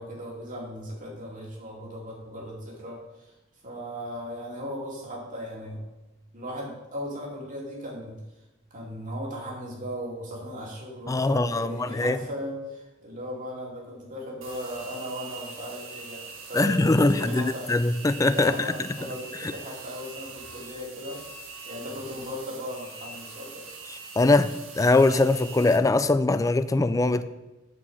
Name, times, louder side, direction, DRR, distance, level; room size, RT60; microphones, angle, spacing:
voice 1, 0.0-3.3 3.6-5.8 6.3-8.2 8.7-17.7 18.3-21.2 21.7-23.7, equal, 40° right, 2.6 m, -37 dB
voice 2, 11.1-12.2 16.5-18.5 24.2-27.2, left 2 dB, 15° left, 0.4 m, -22 dB
sound 1, 14.4-25.8, right 4 dB, 70° right, 1.5 m, -43 dB
8.4 x 4.7 x 7.2 m
head